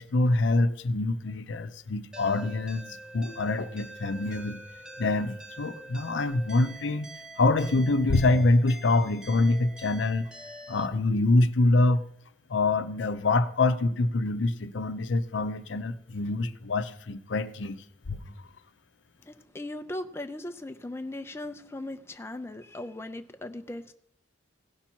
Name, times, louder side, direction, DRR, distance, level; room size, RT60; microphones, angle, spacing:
voice 1, 0.0-4.6 5.0-7.1 7.4-10.3 10.7-12.0 12.5-18.2, left 2 dB, 70° left, 10 dB, 0.6 m, -25 dB
sound 1, 2.1-10.9, right 1 dB, 5° right, 1.1 m, -45 dB
voice 2, 19.2-23.9, left 1 dB, 15° left, 7 dB, 0.5 m, -38 dB
17.0 x 5.8 x 4.5 m, 0.68 s
head